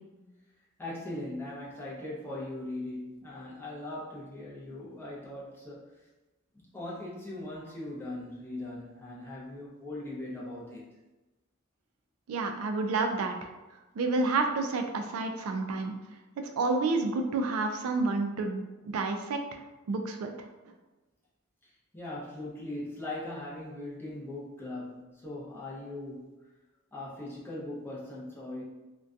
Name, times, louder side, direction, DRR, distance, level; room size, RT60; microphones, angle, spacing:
voice 1, 0.8-5.9 6.5-10.8 21.6-26.3 26.9-28.6, left 1 dB, 10° left, -6 dB, 0.5 m, -40 dB
voice 2, 12.3-13.5 14.0-15.9 16.6-19.6 19.9-20.3, right 3 dB, 90° right, 5 dB, 0.3 m, -29 dB
2.6 x 2.2 x 2.3 m, 1.1 s
head